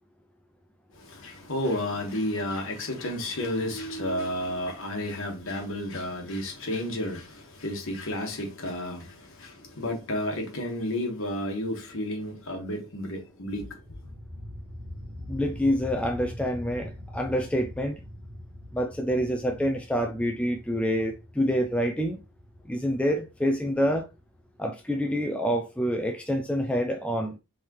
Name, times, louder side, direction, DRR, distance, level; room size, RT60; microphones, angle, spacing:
voice 1, 0.9-14.0, left 1 dB, 60° left, 1.5 m, -32 dB
sound 1, 13.4-25.0, equal, 90° right, 1.3 m, -43 dB
voice 2, 15.3-18.0 18.7-22.2 22.7-24.1 24.6-27.4, equal, 5° left, 0.3 m, -27 dB
4.6 x 3.6 x 3.0 m
head